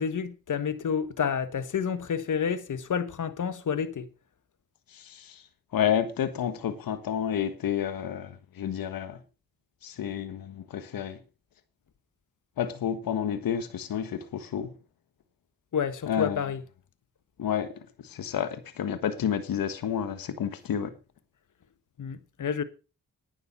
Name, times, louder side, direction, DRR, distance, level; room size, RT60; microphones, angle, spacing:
voice 1, 0.0-4.1 15.7-16.6 22.0-22.6, left 7 dB, 60° left, 1.5 m, -29 dB
voice 2, 4.9-5.4 5.7-9.2 9.8-11.2 12.6-14.7 16.1-16.4 17.4-17.7 18.0-20.9, left 9 dB, 80° left, 1.4 m, -30 dB
11.0 x 10.0 x 5.4 m
cardioid pair, 50°, 34 cm